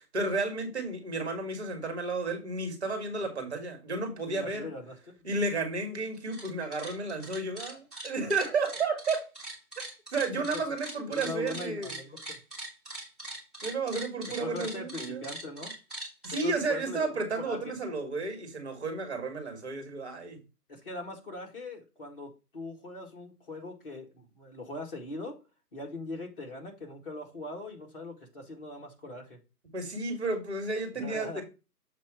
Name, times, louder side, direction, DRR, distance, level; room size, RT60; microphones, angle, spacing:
voice 1, 0.0-4.7 5.2-9.3 10.1-11.9 13.6-15.3 16.2-20.4 29.7-31.4, right 3 dB, 40° right, 5 dB, 1.9 m, -32 dB
voice 2, 4.3-5.2 10.5-10.6 11.1-12.4 14.4-15.7 16.4-17.7 20.7-25.4 25.7-29.4 30.9-31.4, left 2 dB, 35° left, -1 dB, 2.2 m, -41 dB
sound 1, 6.1-6.5 6.7-16.4, right 1 dB, ahead, 1.3 m, -41 dB
7.2 x 3.1 x 6.1 m, 0.29 s
figure-of-eight pair, 160°, 48 cm